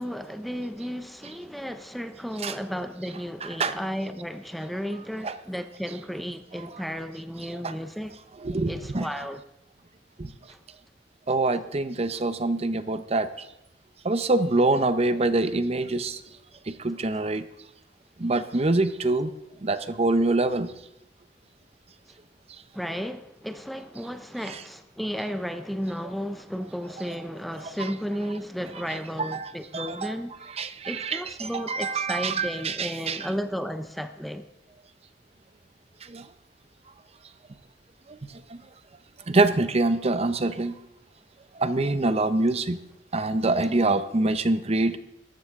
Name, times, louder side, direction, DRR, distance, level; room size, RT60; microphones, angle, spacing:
voice 1, 0.0-8.2 8.7-9.4 10.5-10.6 22.7-30.4 30.9-34.5, equal, ahead, 0.6 m, -33 dB
voice 2, 3.4-3.8 5.2-5.4 7.5-7.7 8.4-9.1 10.2-10.3 11.3-13.3 14.0-16.2 16.7-17.4 18.2-19.3 19.6-20.7 27.6-27.9 29.2-30.1 30.6-33.3 36.1-36.2 38.1-38.2 38.5-38.6 39.3-40.7 41.6-42.8 43.1-45.0, right 2 dB, 35° right, 0.7 m, -25 dB
18.0 x 14.5 x 3.6 m
head